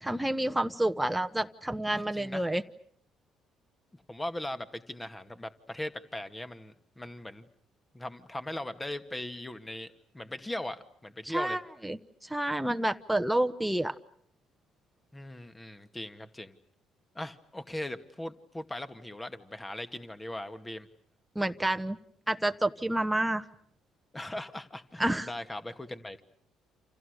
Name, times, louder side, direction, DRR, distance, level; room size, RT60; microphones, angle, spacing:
voice 1, 0.0-2.6 11.2-13.9 21.3-22.0 22.3-23.4 25.0-25.3, right 1 dB, 5° right, 8 dB, 1.2 m, -29 dB
voice 2, 1.9-2.4 3.9-7.5 7.9-11.6 15.1-16.6 17.1-20.9 24.1-26.2, left 1 dB, 15° left, 10 dB, 2.2 m, -39 dB
29.5 x 28.0 x 6.7 m, 0.62 s
hypercardioid pair, 55°, 0 cm